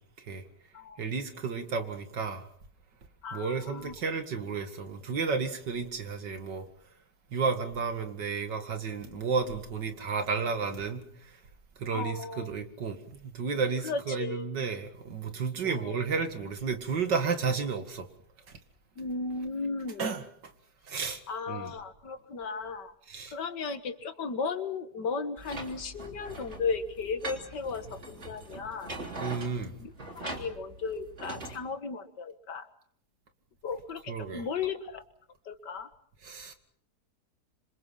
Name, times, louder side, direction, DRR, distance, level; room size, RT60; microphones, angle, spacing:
voice 1, 1.0-2.5 3.3-6.7 7.3-11.4 11.8-18.1 18.5-18.6 20.0-20.5 20.9-21.2 21.5-21.7 23.1-23.3 29.2-29.7 34.1-34.5 36.2-36.5, right 5 dB, 85° right, 2.8 m, -32 dB
voice 2, 3.2-3.9 11.9-12.6 13.8-14.5 15.6-16.1 19.0-20.1 21.3-22.9 23.3-28.9 29.8-32.7 33.6-35.0 35.5-35.9, left 4 dB, 80° left, 2.2 m, -35 dB
sound 1, 25.4-31.6, right 2 dB, 40° right, 3.6 m, -42 dB
27.0 x 26.0 x 5.8 m
omnidirectional pair, 1.8 m